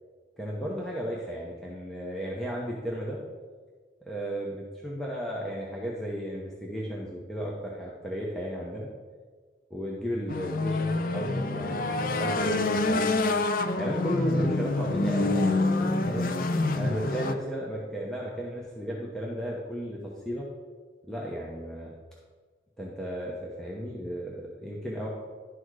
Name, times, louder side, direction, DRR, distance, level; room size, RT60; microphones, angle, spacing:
voice 1, 0.4-3.2 4.1-8.9 9.7-13.1 13.8-16.3 16.7-20.5 21.1-21.9 22.8-25.1, equal, 5° left, -4 dB, 0.9 m, -34 dB
sound 1, 10.3-17.3, left 2 dB, 50° left, 0.5 m, -27 dB
11.0 x 4.3 x 4.8 m, 1.5 s
head